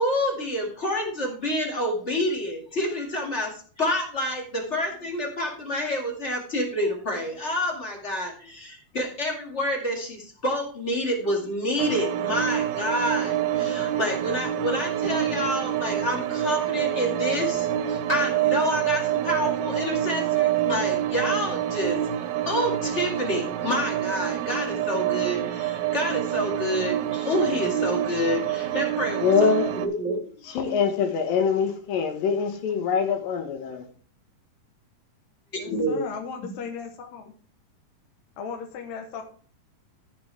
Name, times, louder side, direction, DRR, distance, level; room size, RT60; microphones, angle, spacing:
voice 1, 0.0-22.0 22.5-29.5 29.8-30.5 35.7-36.0, left 1 dB, 25° left, 2.0 m, -28 dB
sound 1, 11.8-29.9, right 12 dB, 75° right, 1.9 m, -27 dB
voice 2, 29.2-29.7 30.4-33.9, left 6 dB, 90° left, 3.2 m, -24 dB
voice 3, 35.5-37.3 38.4-39.2, left 6 dB, 65° left, 2.1 m, -36 dB
14.5 x 6.0 x 3.5 m
omnidirectional pair, 3.9 m